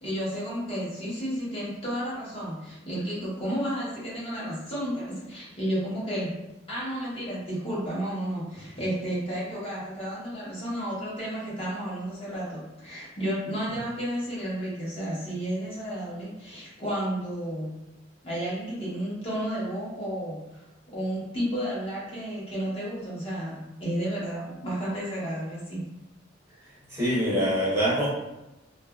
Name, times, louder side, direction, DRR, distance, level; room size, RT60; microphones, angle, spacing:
voice 1, 0.0-6.3 6.7-17.7 18.2-20.6 20.9-25.8, equal, 30° left, -8 dB, 1.0 m, -32 dB
voice 2, 26.9-28.1, equal, 15° right, -9 dB, 0.8 m, -24 dB
2.6 x 2.5 x 2.3 m, 0.98 s
head